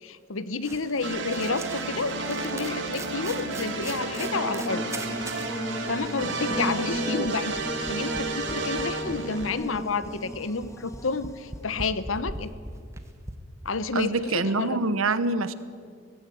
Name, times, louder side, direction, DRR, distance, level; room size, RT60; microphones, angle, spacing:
voice 1, 0.0-4.8 5.9-12.5 13.6-14.8, left 4 dB, 75° left, 14 dB, 1.0 m, -30 dB
sound 1, 0.6-5.5 5.9-6.0 6.2-13.3, right 2 dB, 15° right, 1.4 m, -41 dB
sound 2, 1.0-9.5, right 2 dB, 60° right, 2.2 m, -32 dB
Buzz, 3.5-11.7, equal, 15° left, 1.2 m, -37 dB
voice 2, 13.9-15.5, right 3 dB, 85° right, 14 dB, 1.0 m, -25 dB
18.0 x 16.0 x 9.3 m, 2.1 s
head